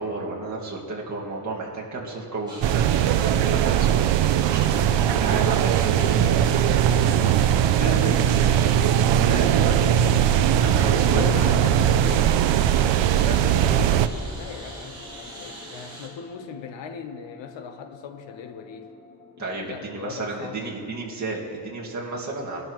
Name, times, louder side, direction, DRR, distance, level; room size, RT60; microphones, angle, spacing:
voice 1, 0.0-4.1 4.4-8.3 8.8-8.9 9.2-10.3 10.6-11.2 13.3-14.0 19.4-22.6, right 3 dB, 40° right, -3 dB, 2.1 m, -33 dB
Engine, 2.5-16.1, right 2 dB, 10° right, 3.9 m, -42 dB
sound 1, 2.6-14.1, right 10 dB, 90° right, 0.6 m, -20 dB
sound 2, 4.6-20.5, left 2 dB, 60° left, 1.9 m, -40 dB
voice 2, 10.7-12.4 14.3-18.9 19.4-20.9, left 6 dB, 85° left, 7 dB, 1.0 m, -38 dB
20.5 x 12.0 x 3.1 m, 2.4 s
wide cardioid pair, 160°, 43 cm